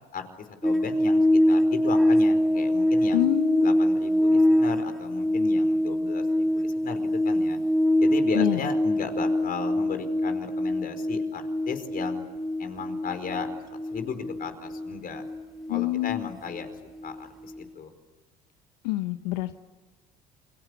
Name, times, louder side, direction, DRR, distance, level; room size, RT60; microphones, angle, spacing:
voice 1, 0.6-3.2 3.6-7.6 8.0-12.2 12.6-13.5 13.9-15.2 15.7-17.9, left 6 dB, 45° left, 8 dB, 4.9 m, -36 dB
sound 1, 0.6-17.2 17.5-17.6, left 1 dB, ahead, 3.6 m, -24 dB
voice 2, 3.1-3.7 8.3-8.7 15.7-16.3 18.8-19.6, left 17 dB, 80° left, 10 dB, 0.9 m, -26 dB
29.0 x 23.5 x 8.3 m, 1.3 s
hypercardioid pair, 70°, 20 cm